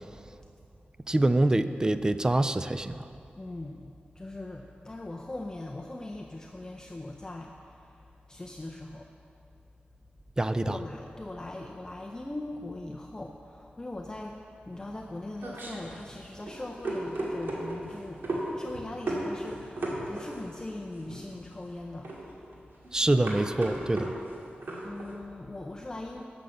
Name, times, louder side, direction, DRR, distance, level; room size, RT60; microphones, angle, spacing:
voice 1, 1.1-3.0 10.4-10.8 22.9-24.1, right 1 dB, 20° right, 11 dB, 0.4 m, -25 dB
voice 2, 3.4-9.1 10.6-18.3 18.5-22.1 24.8-26.2, left 2 dB, 20° left, 1 dB, 0.6 m, -40 dB
sound 1, 14.7-25.1, right 1 dB, 75° right, 2.2 m, -36 dB
11.5 x 6.8 x 7.1 m, 2.6 s
wide cardioid pair, 125°, 4 cm